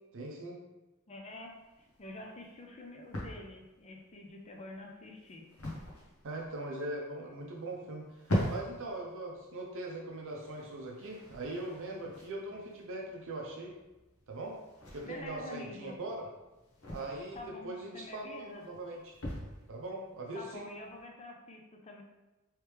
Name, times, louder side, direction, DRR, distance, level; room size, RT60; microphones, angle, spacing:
voice 1, 0.1-0.6 6.2-13.8 14.3-14.6 14.9-16.3 16.9-19.1 19.7-20.7, right 2 dB, 60° right, -1 dB, 0.5 m, -41 dB
voice 2, 1.1-5.5 15.1-16.0 17.3-18.6 20.3-22.0, left 2 dB, 30° left, 1 dB, 0.4 m, -47 dB
sound 1, 1.3-21.0, left 1 dB, 70° left, 0.9 m, -43 dB
3.2 x 3.1 x 3.3 m, 1.1 s
head